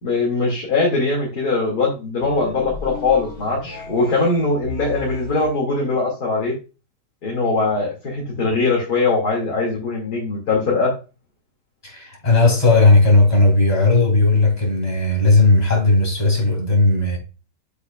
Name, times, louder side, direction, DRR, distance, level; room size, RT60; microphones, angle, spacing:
voice 1, 0.0-6.5 7.2-10.9, left 3 dB, 60° left, 2.9 m, -21 dB
sound 1, 2.2-5.6, left 1 dB, 40° left, 2.2 m, -34 dB
voice 2, 11.8-17.2, left 2 dB, 20° left, 3.3 m, -16 dB
8.1 x 7.1 x 2.4 m
omnidirectional pair, 1.9 m